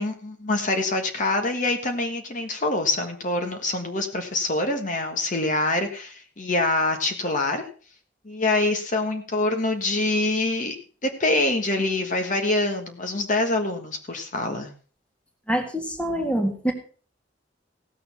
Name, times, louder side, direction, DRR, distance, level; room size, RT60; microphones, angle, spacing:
voice 1, 0.0-7.6 8.2-10.7 11.0-14.7, left 2 dB, 45° left, 5 dB, 1.5 m, -25 dB
voice 2, 15.5-16.7, right 1 dB, 5° left, 4 dB, 1.8 m, -25 dB
16.5 x 6.9 x 5.6 m, 0.41 s
head